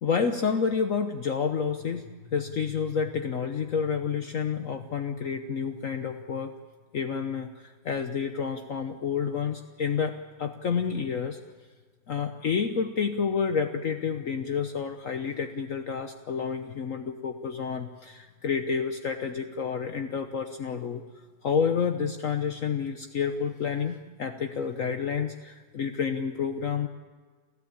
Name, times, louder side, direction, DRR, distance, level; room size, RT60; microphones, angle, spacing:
voice 1, 0.0-6.5 6.9-11.4 12.1-21.0 21.4-26.9, left 6 dB, 60° left, 6 dB, 1.3 m, -29 dB
29.5 x 14.5 x 8.8 m, 1.4 s
omnidirectional pair, 1.7 m